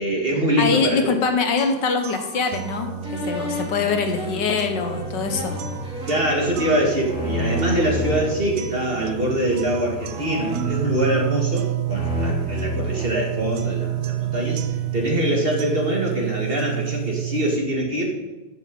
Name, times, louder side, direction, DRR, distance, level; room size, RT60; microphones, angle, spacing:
voice 1, 0.0-1.1 6.0-14.6 14.9-18.1, right 1 dB, 30° right, -1 dB, 1.8 m, -24 dB
voice 2, 0.6-5.6, left 5 dB, 70° left, 5 dB, 1.6 m, -23 dB
sound 1, 1.6-17.6, right 12 dB, 85° right, 0.7 m, -30 dB
sound 2, 3.0-8.3 8.9-9.4 10.1-11.5 11.9-13.8, equal, 5° right, 2.1 m, -31 dB
sound 3, 4.7-15.1, left 1 dB, 65° right, 2.6 m, -39 dB
14.0 x 6.8 x 5.1 m, 1.1 s
omnidirectional pair, 2.0 m